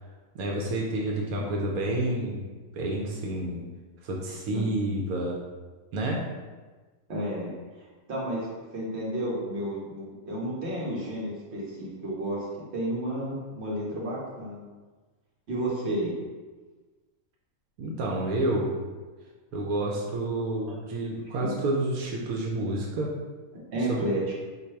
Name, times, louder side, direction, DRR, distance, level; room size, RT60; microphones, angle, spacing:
voice 1, 0.3-2.4 2.7-3.6 4.0-5.4 5.9-6.2 17.8-18.8 19.5-23.1 23.8-24.0, right 1 dB, 85° right, -1 dB, 1.1 m, -29 dB
voice 2, 4.5-4.9 7.1-7.5 8.1-12.4 12.7-14.6 15.5-16.1 21.4-21.5 23.7-24.2, right 1 dB, 50° right, -5 dB, 1.4 m, -31 dB
4.1 x 2.6 x 4.4 m, 1.3 s
omnidirectional pair, 1.5 m